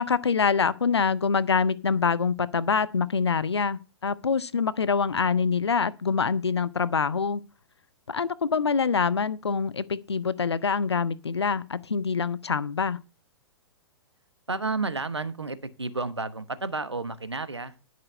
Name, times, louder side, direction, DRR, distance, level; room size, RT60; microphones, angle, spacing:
voice 1, 0.0-7.4 8.1-13.0, left 5 dB, 75° left, 0.6 m, -25 dB
voice 2, 14.5-17.7, right 3 dB, 85° right, 1.0 m, -31 dB
11.0 x 6.2 x 5.2 m
figure-of-eight pair, 110°, 14 cm